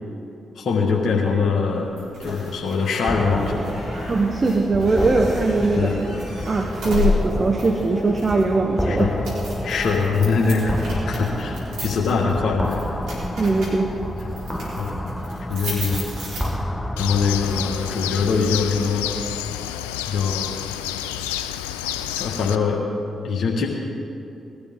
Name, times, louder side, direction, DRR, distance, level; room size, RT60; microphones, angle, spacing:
voice 1, 0.5-1.9 2.2-3.7 5.7-6.0 8.8-9.1 9.6-10.8 11.1-12.8 14.8-15.0 15.5-16.1 17.0-19.1 20.1-20.5 22.1-22.8 23.2-23.7, left 5 dB, 65° left, -2 dB, 1.7 m, -22 dB
sound 1, 2.0-16.9, left 3 dB, 75° right, 4.2 m, -33 dB
sound 2, 3.1-18.3, equal, 5° left, 1.2 m, -29 dB
voice 2, 4.1-5.9 6.5-9.1 13.4-13.9, right 3 dB, 40° right, 3 dB, 1.1 m, -20 dB
Bird, 17.0-22.6, left 11 dB, 90° left, 0.4 m, -29 dB
20.5 x 12.5 x 3.8 m, 2.7 s
hypercardioid pair, 40°, 0 cm